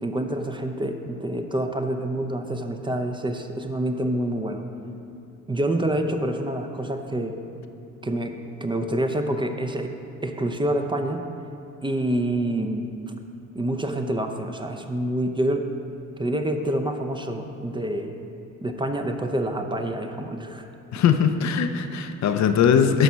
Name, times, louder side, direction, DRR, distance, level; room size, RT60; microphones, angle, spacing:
voice 1, 0.0-4.6 5.5-7.4 8.0-9.9 10.2-11.2 11.8-12.9 13.5-15.7 16.2-18.2 18.6-20.7, right 1 dB, 15° right, 5 dB, 0.6 m, -27 dB
voice 2, 20.9-23.0, left 7 dB, 65° left, 7 dB, 0.6 m, -20 dB
11.5 x 4.2 x 6.2 m, 2.7 s
cardioid pair, 90°, 30 cm